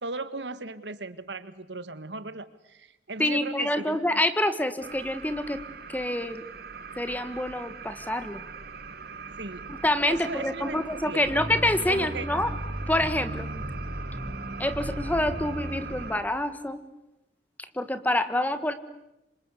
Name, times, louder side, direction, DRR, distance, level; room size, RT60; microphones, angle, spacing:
voice 1, 0.0-4.0 9.4-9.7 10.1-11.4 11.9-12.3, right 3 dB, 85° right, 13 dB, 1.7 m, -37 dB
voice 2, 3.2-5.6 5.9-6.4 6.9-8.4 9.8-12.5 12.9-13.5 14.6-16.8 17.7-18.7, left 1 dB, 10° left, 11 dB, 1.6 m, -27 dB
sound 1, 4.8-16.2, right 4 dB, 60° right, 1.8 m, -41 dB
sound 2, 11.3-15.8, equal, 40° right, 7.3 m, -36 dB
27.5 x 26.0 x 8.4 m, 0.88 s
head